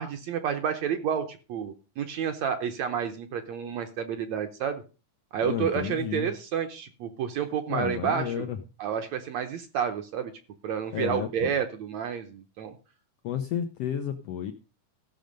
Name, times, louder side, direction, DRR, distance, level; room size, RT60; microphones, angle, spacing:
voice 1, 0.0-4.8 5.3-8.5 8.8-10.3 10.6-12.7, right 8 dB, 70° right, 7 dB, 1.8 m, -30 dB
voice 2, 5.4-6.3 7.7-8.6 10.9-11.5 13.2-14.5, left 9 dB, 90° left, 8 dB, 1.3 m, -31 dB
15.5 x 6.4 x 5.2 m, 0.34 s
omnidirectional pair, 3.8 m